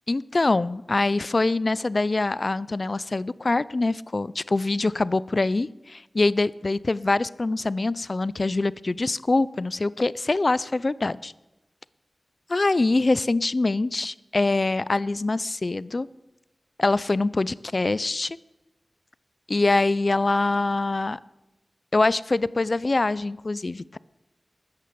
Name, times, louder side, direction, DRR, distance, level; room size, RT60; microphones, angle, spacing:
voice 1, 0.1-11.3 12.5-16.1 16.8-18.4 19.5-21.2 21.9-24.0, left 2 dB, 50° left, 19 dB, 0.4 m, -24 dB
13.5 x 9.7 x 6.9 m, 0.99 s
cardioid pair, 50°, 0 cm